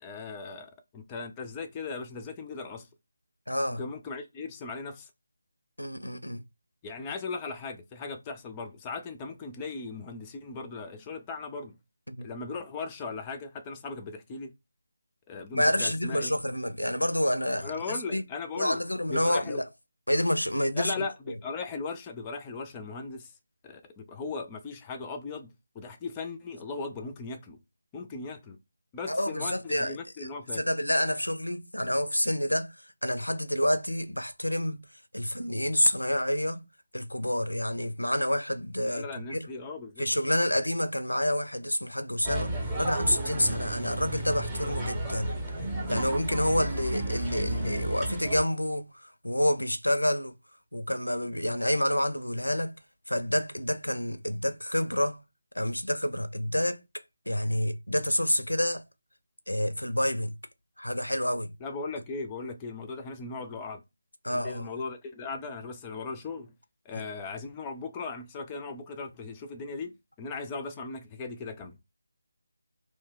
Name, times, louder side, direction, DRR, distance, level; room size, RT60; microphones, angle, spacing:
voice 1, 0.0-2.9 3.7-5.1 6.8-11.8 12.2-14.5 15.3-16.3 17.6-18.8 19.1-19.6 20.8-23.3 23.6-27.6 27.9-28.6 28.9-30.6 38.8-40.0 61.6-63.8 64.3-66.5 66.9-71.8, left 4 dB, 15° left, 0.3 m, -38 dB
voice 2, 3.5-3.8 5.8-6.4 12.1-12.3 15.5-18.2 18.5-19.6 20.1-20.9 29.1-32.7 33.0-34.8 35.1-36.6 36.9-39.4 40.0-45.3 45.9-50.3 50.7-52.8 53.1-55.2 55.6-56.8 57.3-58.8 59.5-60.3 60.8-61.5 64.2-64.7 66.9-67.0, left 1 dB, 85° left, 0.5 m, -28 dB
sound 1, 42.2-48.4, right 1 dB, 10° right, 0.7 m, -33 dB
2.5 x 2.1 x 3.7 m
figure-of-eight pair, 155°, 0 cm